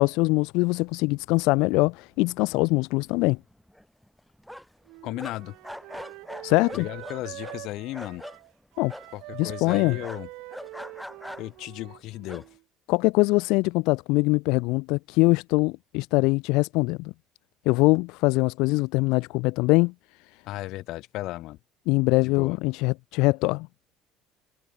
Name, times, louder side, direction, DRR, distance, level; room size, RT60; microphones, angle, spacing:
voice 1, 0.0-3.4 6.4-6.9 8.8-8.9 9.4-10.0 12.9-17.1 17.7-19.9 21.9-23.7, left 25 dB, 80° left, 0.4 m, -23 dB
sound 1, 1.6-2.2 2.5-2.6 3.0-4.9 5.2-8.4 8.9-9.1 9.7-11.6 12.2-12.5, equal, ahead, 2.5 m, -42 dB
Wind instrument woodwind instrument, 4.9-12.6, right 23 dB, 70° right, 3.1 m, -44 dB
voice 2, 5.0-5.6 6.7-8.2 9.1-10.3 11.4-12.5 20.5-21.6 22.2-22.6, left 17 dB, 55° left, 3.8 m, -35 dB
cardioid pair, 180°, 0 cm